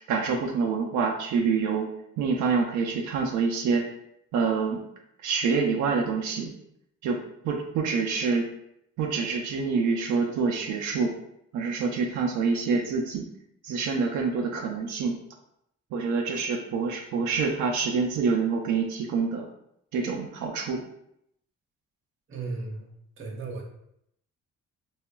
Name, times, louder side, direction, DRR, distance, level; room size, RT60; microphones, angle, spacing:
voice 1, 0.1-1.9 2.2-3.9 4.3-4.8 5.2-6.5 7.0-7.2 7.4-8.5 9.0-11.1 11.5-13.3 13.6-15.2 15.9-19.5 19.9-20.8, right 5 dB, 80° right, 1 dB, 0.4 m, -26 dB
voice 2, 22.3-22.9 23.2-23.6, right 3 dB, 40° right, 1 dB, 0.6 m, -35 dB
2.8 x 2.4 x 2.2 m, 0.75 s
cardioid pair, 90°, 30 cm